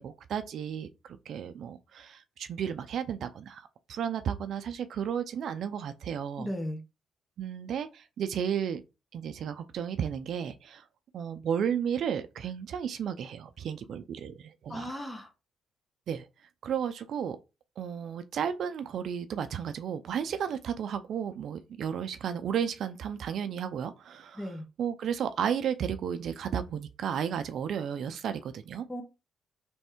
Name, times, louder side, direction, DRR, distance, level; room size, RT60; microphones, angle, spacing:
voice 1, 0.0-6.5 7.4-8.8 9.1-10.8 11.1-14.9 16.1-16.3 16.6-17.4 17.8-28.9, right 8 dB, 65° right, 0.5 m, -33 dB
voice 2, 6.4-6.8 14.7-15.3 24.4-24.6 28.9-29.0, equal, 15° left, 1.3 m, -36 dB
3.5 x 3.2 x 4.4 m
cardioid pair, 90°, 0 cm